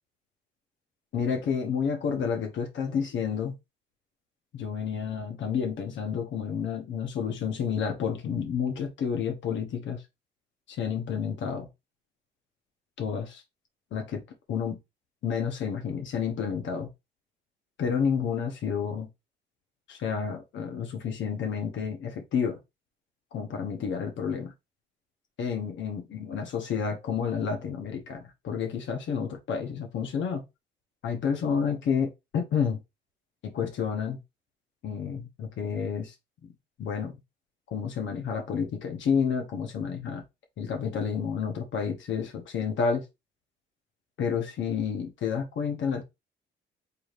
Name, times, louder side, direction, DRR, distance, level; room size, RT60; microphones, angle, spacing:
voice 1, 1.1-3.5 4.5-10.0 10.7-11.7 13.0-13.4 13.9-14.2 14.5-14.8 15.2-16.9 17.8-19.1 19.9-22.6 23.3-24.5 25.4-30.4 31.0-32.8 33.4-34.2 34.8-36.1 36.4-36.5 36.8-37.2 37.7-40.2 40.6-43.1 44.2-46.0, left 6 dB, 70° left, 0.9 m, -30 dB
4.8 x 3.3 x 2.4 m
cardioid pair, 90°, 20 cm